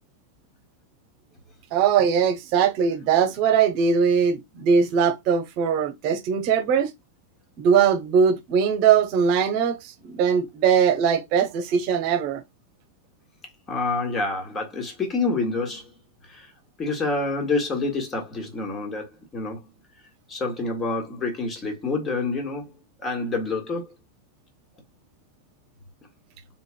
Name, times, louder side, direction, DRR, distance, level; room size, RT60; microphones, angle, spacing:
voice 1, 1.7-6.9 7.6-12.4, right 7 dB, 45° right, 1.0 m, -21 dB
voice 2, 13.7-15.9 16.3-16.5 16.8-19.7 20.3-22.7 23.0-23.9, left 3 dB, 25° left, 1.6 m, -27 dB
3.8 x 3.8 x 2.2 m
figure-of-eight pair, 90°, 0 cm